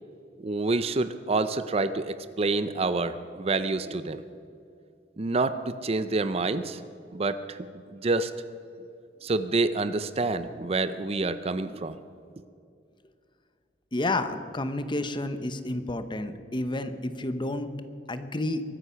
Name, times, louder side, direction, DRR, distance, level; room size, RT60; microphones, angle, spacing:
voice 1, 0.4-4.2 5.2-6.8 7.1-7.6 7.9-8.3 9.2-12.0, right 3 dB, 35° right, 12 dB, 0.5 m, -27 dB
voice 2, 13.9-17.7 18.1-18.6, left 2 dB, 25° left, 10 dB, 0.9 m, -30 dB
22.5 x 9.7 x 5.7 m, 2.4 s
head